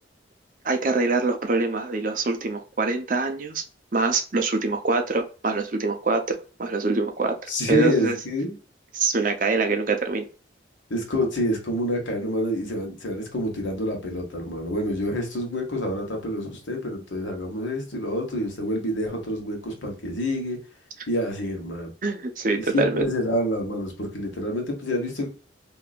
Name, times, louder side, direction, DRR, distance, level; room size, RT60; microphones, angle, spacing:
voice 1, 0.6-3.6 3.9-7.4 7.7-8.2 8.9-10.3 22.0-23.1, right 3 dB, 45° right, 5 dB, 0.6 m, -24 dB
voice 2, 7.5-8.5 10.9-20.6 21.1-21.9 22.5-25.3, left 1 dB, 85° left, 2 dB, 1.3 m, -27 dB
3.8 x 2.8 x 2.4 m, 0.37 s
head